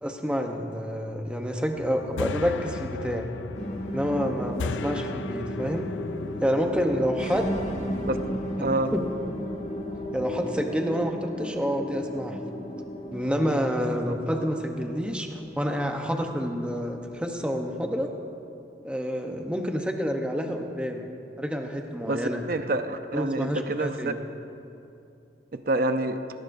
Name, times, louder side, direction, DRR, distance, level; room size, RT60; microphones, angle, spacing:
voice 1, 0.0-3.3 3.9-5.9 6.4-7.6 8.6-9.0 10.1-12.4 13.1-18.1 18.8-21.1 21.4-22.4 23.1-24.2, equal, 5° right, 3 dB, 0.8 m, -28 dB
sound 1, 1.8-10.4, left 5 dB, 90° left, 0.4 m, -39 dB
sound 2, 3.5-18.1, equal, 40° left, 1.5 m, -35 dB
voice 2, 8.6-8.9 22.1-24.1 25.5-26.2, right 2 dB, 50° right, 8 dB, 0.6 m, -27 dB
18.0 x 18.0 x 2.7 m, 2.7 s
head